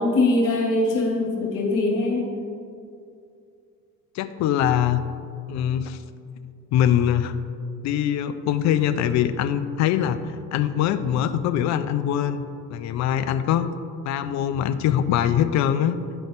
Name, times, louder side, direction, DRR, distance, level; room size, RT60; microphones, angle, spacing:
voice 1, 0.0-2.2, left 2 dB, 70° left, -2 dB, 1.8 m, -22 dB
voice 2, 4.1-5.0 5.5-6.0 6.7-7.3 7.8-12.4 12.7-13.7 14.0-16.0, left 10 dB, 40° left, 10 dB, 0.4 m, -23 dB
11.5 x 3.8 x 3.4 m, 2.4 s
hypercardioid pair, 65°, 48 cm